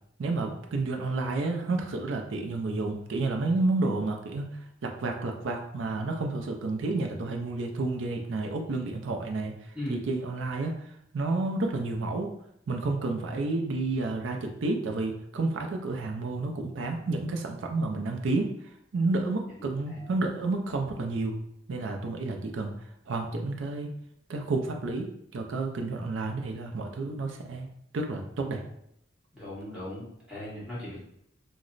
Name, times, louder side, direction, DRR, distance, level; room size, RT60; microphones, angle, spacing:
voice 1, 0.2-9.5 9.9-10.7 11.1-12.3 12.7-18.5 18.9-21.4 21.7-22.7 23.1-23.9 24.3-27.7 27.9-28.6, right 3 dB, 80° right, 3 dB, 0.4 m, -30 dB
voice 2, 19.6-20.1 29.3-31.0, left 1 dB, 5° right, -8 dB, 1.5 m, -38 dB
3.0 x 2.0 x 3.8 m, 0.74 s
head